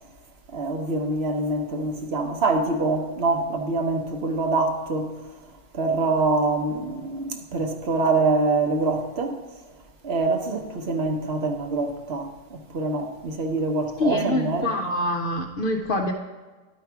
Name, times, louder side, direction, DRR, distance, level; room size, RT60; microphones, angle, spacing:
voice 1, 0.5-5.1 5.7-9.4 10.0-14.7, right 3 dB, 55° right, 1.1 m, -25 dB
voice 2, 14.0-16.1, left 1 dB, 50° left, 0.8 m, -25 dB
11.5 x 4.7 x 4.6 m
omnidirectional pair, 1.3 m